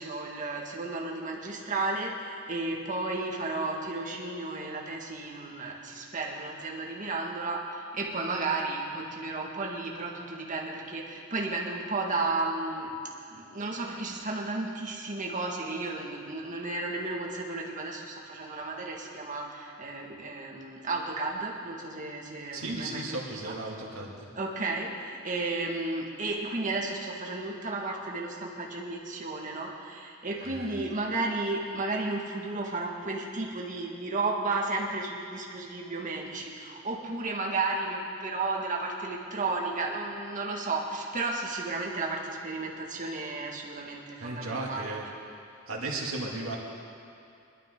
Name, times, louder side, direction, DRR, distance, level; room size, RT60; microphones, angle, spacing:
voice 1, 0.0-12.9 13.3-23.6 24.4-44.9, right 3 dB, 40° right, -1 dB, 1.8 m, -33 dB
voice 2, 22.5-24.1 44.2-45.1 45.7-46.6, right 2 dB, 90° right, -2 dB, 2.4 m, -35 dB
21.5 x 12.5 x 3.8 m, 2.5 s
head